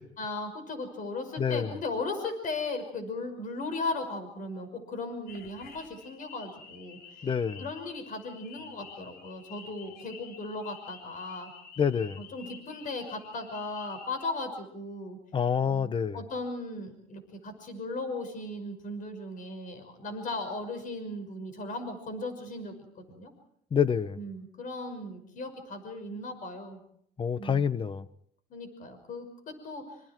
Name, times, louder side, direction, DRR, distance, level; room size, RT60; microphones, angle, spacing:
voice 1, 0.2-7.3 7.6-11.5 12.2-15.2 15.6-23.3 24.2-26.8 27.4-27.7 28.5-30.0, left 2 dB, 50° left, 5.9 m, -37 dB
voice 2, 1.4-1.7 7.2-7.6 11.8-12.2 15.3-16.2 23.7-24.2 27.2-28.1, left 7 dB, 30° left, 1.0 m, -27 dB
sound 1, 5.3-14.2, left 5 dB, 70° left, 3.2 m, -50 dB
27.0 x 27.0 x 4.6 m
cardioid pair, 110°, 17 cm